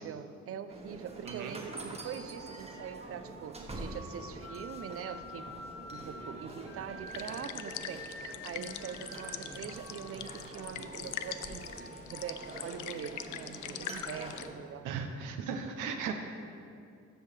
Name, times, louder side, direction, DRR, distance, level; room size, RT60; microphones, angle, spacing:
voice 1, 0.0-5.5 5.9-15.1, right 9 dB, 50° right, 12 dB, 0.5 m, -43 dB
sound 1, 0.7-14.5, right 2 dB, 20° right, 1.3 m, -46 dB
sound 2, 1.4-14.2, equal, 55° left, 1.2 m, -50 dB
sound 3, 7.1-14.5, left 11 dB, 80° left, 0.5 m, -43 dB
voice 2, 14.8-16.1, right 6 dB, 90° right, 4 dB, 0.7 m, -36 dB
13.5 x 5.5 x 3.3 m, 2.5 s
cardioid pair, 90°, 30 cm